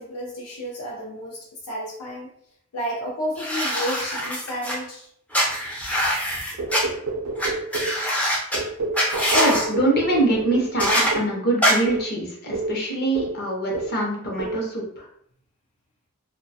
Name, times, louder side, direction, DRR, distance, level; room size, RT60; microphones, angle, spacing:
voice 1, 0.0-2.3 2.7-5.1, equal, 85° left, -3 dB, 0.5 m, -31 dB
sound 1, 3.4-4.8 5.3-6.8 7.4-7.5 7.7-8.6 8.9-9.7 10.8-11.1 11.6-11.7, equal, 5° left, 0.3 m, -23 dB
sound 2, 6.6-8.0 8.5-11.4 11.9-12.1 12.5-12.8 13.1-13.4 13.7-14.0 14.4-14.6, right 3 dB, 80° right, 0.5 m, -29 dB
voice 2, 9.3-14.9, right 1 dB, 45° left, -1 dB, 0.6 m, -24 dB
2.3 x 2.2 x 2.6 m, 0.70 s
head